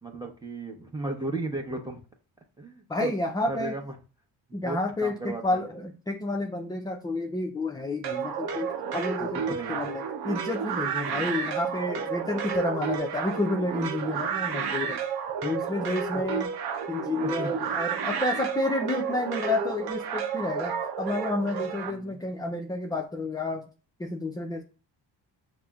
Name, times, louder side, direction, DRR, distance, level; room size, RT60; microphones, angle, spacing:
voice 1, 0.0-2.0 2.6-3.1 3.5-3.9 4.6-5.6 9.3-9.9 16.1-16.2 17.2-17.5 21.9-22.2, right 2 dB, 10° right, 2 dB, 0.9 m, -35 dB
voice 2, 2.9-3.8 4.5-15.0 15.4-16.5 16.9-23.7 24.0-24.6, left 2 dB, 10° left, 2 dB, 0.3 m, -30 dB
sound 1, 8.0-21.9, right 7 dB, 60° right, 0.7 m, -31 dB
6.0 x 2.0 x 2.3 m, 0.36 s
cardioid pair, 75°, 44 cm